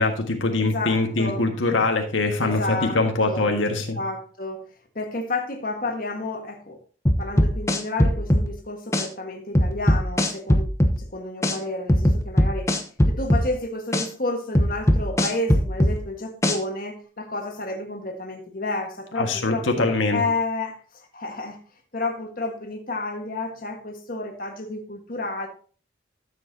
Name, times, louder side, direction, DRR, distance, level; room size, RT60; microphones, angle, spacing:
voice 1, 0.0-4.0 19.2-20.2, left 3 dB, 90° left, 3 dB, 1.7 m, -23 dB
voice 2, 0.6-1.4 2.4-3.0 3.3-3.5 3.9-4.6 4.9-6.8 7.2-10.7 11.0-12.7 13.1-20.8 21.1-21.6 21.9-25.5, left 2 dB, 45° left, 2 dB, 1.6 m, -31 dB
sound 1, 7.1-8.5 8.9-9.1 9.6-11.0 11.4-11.6 11.9-13.5 13.9-14.1 14.6-16.0 16.4-16.6, equal, 15° left, 0.9 m, -19 dB
13.0 x 7.6 x 2.8 m, 0.40 s
head